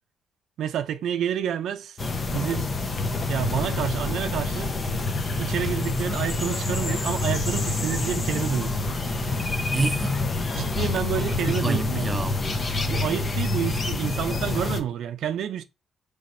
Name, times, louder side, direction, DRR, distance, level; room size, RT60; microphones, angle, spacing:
voice 1, 0.6-2.0 2.3-2.7 3.3-4.7 5.4-8.7 10.6-12.2 12.9-15.6, right 9 dB, 75° right, 0.5 m, -29 dB
sound 1, 2.0-14.8, left 3 dB, 35° left, 0.8 m, -27 dB
voice 2, 9.6-10.1 11.1-12.7, right 3 dB, 30° right, 0.6 m, -29 dB
5.7 x 3.4 x 2.6 m
cardioid pair, 90°, 0 cm